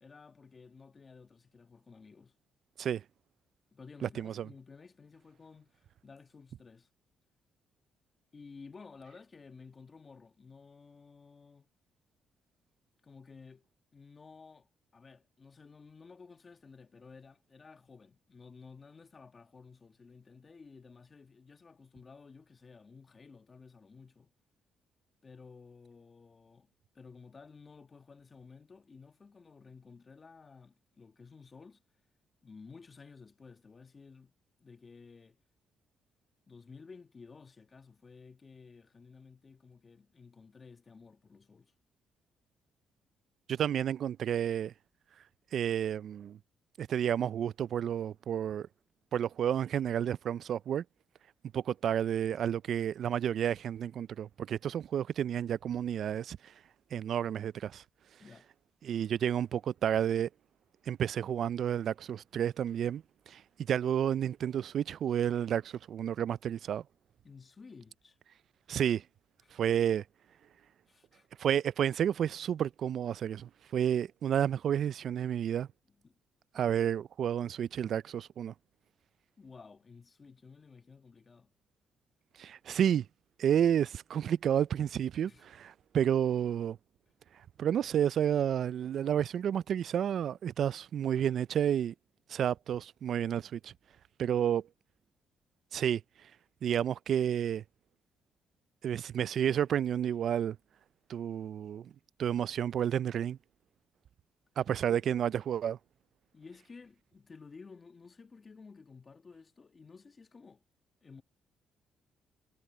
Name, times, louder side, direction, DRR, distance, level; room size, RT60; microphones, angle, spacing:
voice 1, 0.0-2.3 3.7-6.9 8.3-11.6 13.0-13.7 13.9-24.3 25.2-26.7 26.9-31.8 32.4-34.3 34.6-35.4 36.5-41.7 58.2-58.5 67.2-68.2 69.4-69.6 70.9-71.3 75.9-76.2 76.5-76.6 79.4-81.5 85.3-85.5 104.9-105.1 106.3-110.6 111.0-111.2, left 4 dB, 35° left, 1.4 m, -54 dB
voice 2, 4.0-4.5 43.5-44.7 45.5-46.4 46.8-48.7 49.1-50.8 51.5-56.4 56.9-57.8 58.8-60.3 60.9-63.4 63.7-66.8 68.7-69.0 69.5-70.0 71.4-75.7 76.5-78.5 82.4-83.1 83.4-86.8 87.6-91.9 92.3-93.7 94.2-94.6 95.7-96.0 96.6-97.6 98.8-100.6 101.1-101.9 102.2-103.4 104.6-105.8, right 9 dB, 65° right, 0.3 m, -31 dB
cardioid pair, 90°, 0 cm